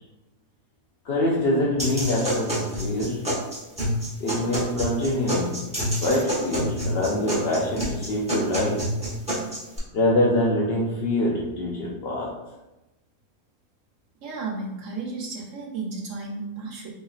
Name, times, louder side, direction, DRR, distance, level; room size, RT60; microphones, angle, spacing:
voice 1, 1.0-3.4 4.2-8.9 9.9-12.4, left 1 dB, 60° left, -4 dB, 0.6 m, -25 dB
sound 1, 1.8-9.8, equal, 5° right, 1.0 m, -28 dB
voice 2, 14.2-16.9, right 3 dB, 65° right, -2 dB, 1.1 m, -33 dB
3.9 x 3.5 x 2.4 m, 0.99 s
omnidirectional pair, 1.5 m